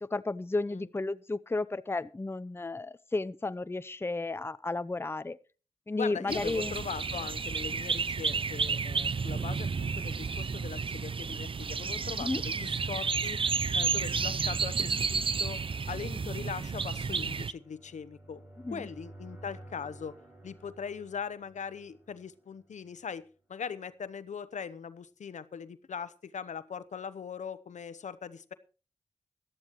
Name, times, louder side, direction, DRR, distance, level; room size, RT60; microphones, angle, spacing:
voice 1, 0.0-5.4 5.9-6.8 12.2-12.4 18.6-18.9, left 2 dB, 20° left, 14 dB, 0.6 m, -33 dB
voice 2, 6.0-13.4 13.7-15.6 15.9-18.4 18.7-20.2 20.4-28.5, left 6 dB, 75° left, 15 dB, 0.9 m, -40 dB
sound 1, 6.3-17.5, right 5 dB, 45° right, 0.6 m, -31 dB
sound 2, 15.5-23.3, right 1 dB, 15° right, 4.9 m, -54 dB
17.0 x 12.0 x 3.1 m, 0.35 s
cardioid pair, 50°, 13 cm